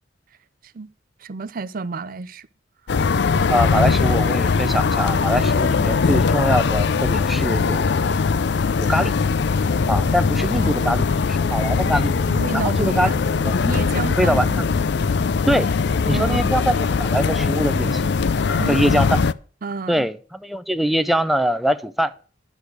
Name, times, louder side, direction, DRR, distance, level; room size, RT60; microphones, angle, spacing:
voice 1, 1.2-2.5 10.5-11.1 11.8-12.0 12.3-14.6 16.1-16.5 18.6-19.1 19.6-20.1, right 4 dB, 50° right, 0.5 m, -31 dB
sound 1, 2.9-19.3, left 5 dB, 65° left, 0.5 m, -20 dB
voice 2, 3.5-7.9 8.8-9.2 9.9-12.1 12.5-13.1 13.4-13.5 14.2-14.7 15.5-15.7 16.0-18.1 18.7-19.2 19.9-22.1, equal, ahead, 0.4 m, -23 dB
10.5 x 6.4 x 6.4 m
head